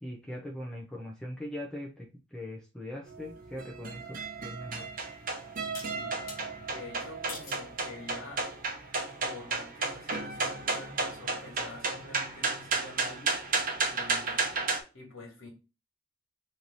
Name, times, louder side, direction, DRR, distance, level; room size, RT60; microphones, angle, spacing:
voice 1, 0.0-4.9, left 1 dB, 5° left, 0.6 m, -41 dB
sound 1, 3.1-14.8, right 4 dB, 45° right, 0.7 m, -33 dB
sound 2, 4.4-4.5 5.7-6.4 7.3-7.7 8.3-8.7, left 3 dB, 50° left, 1.0 m, -44 dB
voice 2, 5.9-8.5 9.2-14.4 14.9-15.5, left 2 dB, 80° left, 1.6 m, -47 dB
3.1 x 2.7 x 4.0 m
head